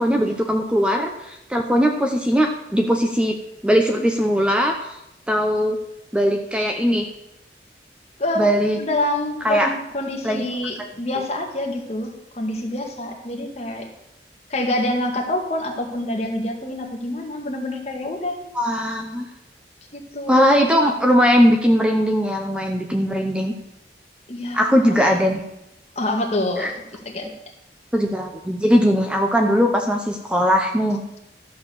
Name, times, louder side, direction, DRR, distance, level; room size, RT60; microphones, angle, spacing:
voice 1, 0.0-3.4 3.6-4.8 5.3-5.8 6.1-7.1 8.4-8.8 9.4-9.7 10.2-10.4 10.8-10.9 18.5-19.3 20.3-23.5 24.5-25.4 26.6-26.7 27.2-27.3 27.9-31.0, equal, 5° right, 3 dB, 0.8 m, -19 dB
voice 2, 8.8-13.9 14.5-18.4 19.9-20.4 24.3-25.3 26.0-26.7 27.0-27.3, left 1 dB, 35° left, 1 dB, 1.9 m, -26 dB
12.5 x 6.6 x 7.1 m, 0.86 s
head